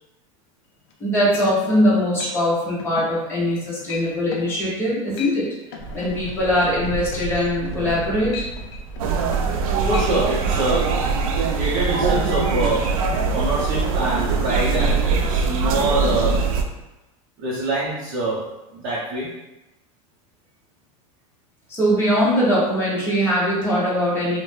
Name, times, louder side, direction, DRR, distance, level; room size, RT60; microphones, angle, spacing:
sound 1, 0.9-1.0 1.3-1.8 2.2-2.4 2.8-3.1 3.5-3.6 3.9-4.1 4.3-4.5 5.0-5.4 5.7-9.6 9.9-10.1 10.5-10.6, left 4 dB, 55° left, 0.5 m, -36 dB
voice 1, 1.0-5.4 5.9-8.3 21.7-24.4, equal, 15° left, -8 dB, 0.9 m, -21 dB
sound 2, 5.8-11.2, right 3 dB, 35° left, 1.4 m, -33 dB
sound 3, 9.0-16.6, right 5 dB, 90° right, 0.4 m, -22 dB
voice 2, 9.9-10.9 11.5-12.8 13.3-16.4 17.4-18.4 18.7-19.3, right 1 dB, 40° right, -8 dB, 0.7 m, -25 dB
2.5 x 2.1 x 3.2 m, 0.96 s
supercardioid pair, 165°, 17 cm